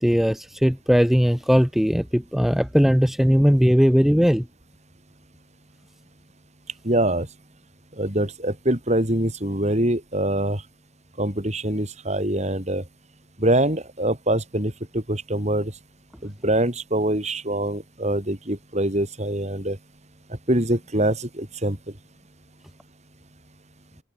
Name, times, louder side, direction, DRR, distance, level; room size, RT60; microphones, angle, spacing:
voice 1, 0.0-4.5, equal, ahead, 0.6 m, -19 dB
voice 2, 6.8-7.3 8.0-10.6 11.2-12.8 13.4-15.7 16.2-19.8 20.5-21.8, right 1 dB, 35° right, 5.1 m, -24 dB
head